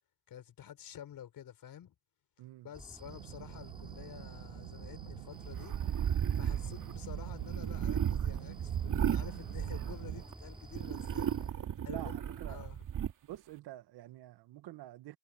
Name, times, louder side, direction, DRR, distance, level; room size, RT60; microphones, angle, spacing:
voice 1, 0.3-1.9 2.6-5.8 6.3-12.2 12.5-12.9, left 10 dB, 50° left, 5.3 m, -50 dB
voice 2, 2.4-2.7 11.9-12.7 13.2-15.2, right 15 dB, 60° right, 2.0 m, -48 dB
sound 1, 2.7-11.5, right 2 dB, 10° right, 7.1 m, -51 dB
sound 2, 3.0-10.2, right 22 dB, 85° right, 1.5 m, -47 dB
sound 3, 5.5-10.3 10.7-13.1, right 9 dB, 45° right, 2.6 m, -34 dB
supercardioid pair, 75°, 42 cm